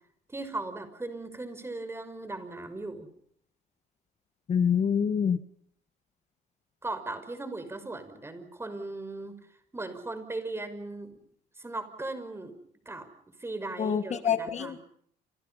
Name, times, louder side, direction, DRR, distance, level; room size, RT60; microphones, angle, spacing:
voice 1, 0.3-3.1 6.8-9.4 9.7-11.1 11.6-12.6 12.9-13.1 13.4-14.8, right 2 dB, 15° right, 10 dB, 5.8 m, -38 dB
voice 2, 4.5-5.4 13.8-14.8, left 7 dB, 40° left, 11 dB, 1.6 m, -26 dB
29.5 x 27.5 x 5.7 m, 0.65 s
cardioid pair, 110°, 17 cm